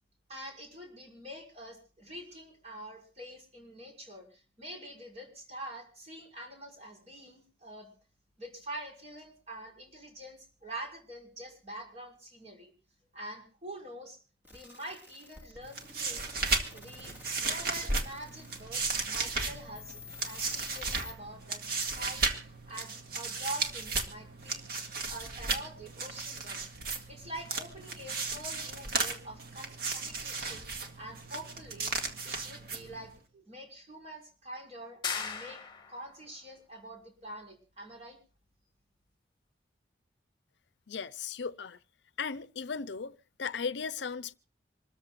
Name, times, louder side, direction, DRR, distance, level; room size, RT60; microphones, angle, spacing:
voice 1, 0.3-7.9 8.4-12.7 13.1-14.2 14.5-16.4 16.7-26.6 27.1-31.9 32.2-35.6 35.9-38.2, right 1 dB, 35° right, 5.8 m, -45 dB
sound 1, 14.4-21.1, left 4 dB, 10° right, 2.1 m, -51 dB
sound 2, 15.6-33.2, right 4 dB, 55° right, 1.9 m, -35 dB
sound 3, 35.0-36.1, left 6 dB, 25° left, 1.7 m, -37 dB
voice 2, 40.9-41.8 42.2-44.3, left 5 dB, 75° left, 0.6 m, -36 dB
26.5 x 14.0 x 2.5 m
head